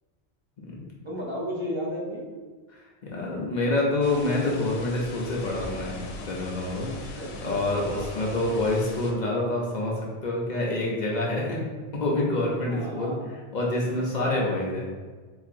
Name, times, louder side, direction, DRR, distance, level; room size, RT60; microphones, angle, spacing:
voice 1, 1.0-2.3 6.9-7.7 12.7-13.3 14.2-14.4, equal, 35° right, -4 dB, 0.6 m, -34 dB
voice 2, 2.7-6.0 6.3-6.9 7.4-11.6 11.9-13.1 13.5-14.9, left 2 dB, 50° left, -3 dB, 0.7 m, -27 dB
sound 1, 4.0-9.1, left 2 dB, 85° left, 0.9 m, -40 dB
sound 2, 7.7-9.1, right 1 dB, 85° right, 1.1 m, -45 dB
4.0 x 2.8 x 2.5 m, 1.4 s
omnidirectional pair, 1.1 m